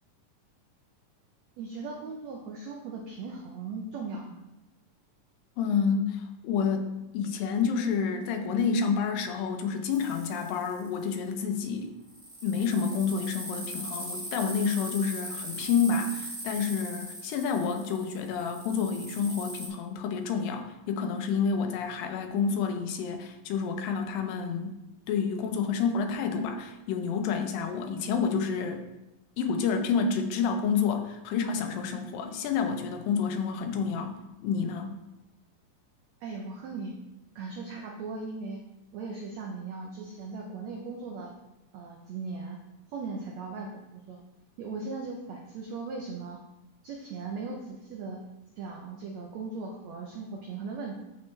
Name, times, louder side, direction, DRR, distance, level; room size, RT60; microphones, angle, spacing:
voice 1, 1.6-4.4 36.2-36.9 37.3-38.6 38.9-41.3 41.7-42.6 42.9-44.2 44.6-46.4 46.8-48.2 48.6-50.9, right 4 dB, 80° right, 1 dB, 1.5 m, -38 dB
voice 2, 5.6-6.9 7.1-12.0 12.4-24.8 25.1-28.8 29.4-34.1 34.4-35.0, left 6 dB, 80° left, 5 dB, 2.5 m, -29 dB
sound 1, 9.9-11.1 12.1-19.7, equal, 20° right, 0.9 m, -40 dB
13.0 x 4.5 x 3.2 m, 0.99 s
omnidirectional pair, 4.0 m